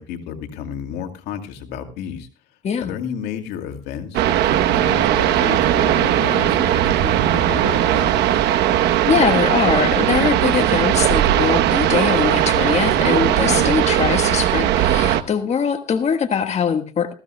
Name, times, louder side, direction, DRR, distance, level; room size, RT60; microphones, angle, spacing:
voice 1, 0.0-2.3 2.8-8.4 13.5-13.7, left 8 dB, 90° left, 4 dB, 2.3 m, -31 dB
sound 1, 4.1-15.2, right 11 dB, 80° right, 1.0 m, -18 dB
voice 2, 9.1-17.1, left 7 dB, 40° left, 5 dB, 1.5 m, -22 dB
19.5 x 15.0 x 2.2 m, 0.33 s
cardioid pair, 110°, 17 cm